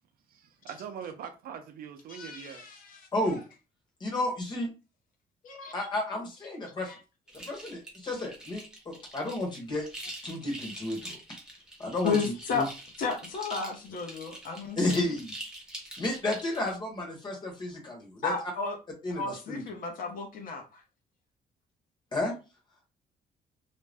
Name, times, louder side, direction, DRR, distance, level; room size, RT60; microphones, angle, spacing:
voice 1, 0.3-2.6, right 8 dB, 65° right, 0.5 m, -42 dB
voice 2, 2.1-3.0 5.4-5.7 6.9-7.0 12.0-12.7 13.0-15.1 18.2-18.8 19.1-20.8, left 4 dB, 55° left, 0.8 m, -33 dB
voice 3, 3.1-3.4 4.0-4.7 5.7-6.9 7.3-9.9 10.2-11.2 11.8-12.7 14.8-15.3 16.0-18.3 19.0-19.6 22.1-22.3, left 1 dB, 25° left, 1.0 m, -32 dB
Rattle Loop soft, 7.3-16.7, right 1 dB, 5° right, 0.7 m, -44 dB
2.5 x 2.1 x 3.3 m
cardioid pair, 155°, 16 cm